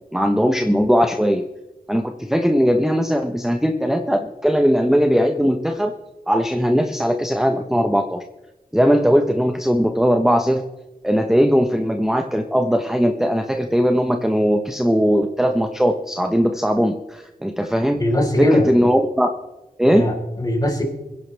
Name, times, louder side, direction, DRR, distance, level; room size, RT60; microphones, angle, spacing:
voice 1, 0.1-1.4 1.9-5.9 6.3-8.2 8.7-10.6 11.0-18.0 18.4-19.3 19.8-20.1, equal, 5° right, 5 dB, 1.0 m, -19 dB
voice 2, 18.0-18.7 19.8-20.8, left 1 dB, 25° left, 0 dB, 4.2 m, -20 dB
23.5 x 11.0 x 3.4 m, 1.0 s
wide cardioid pair, 60°, 15 cm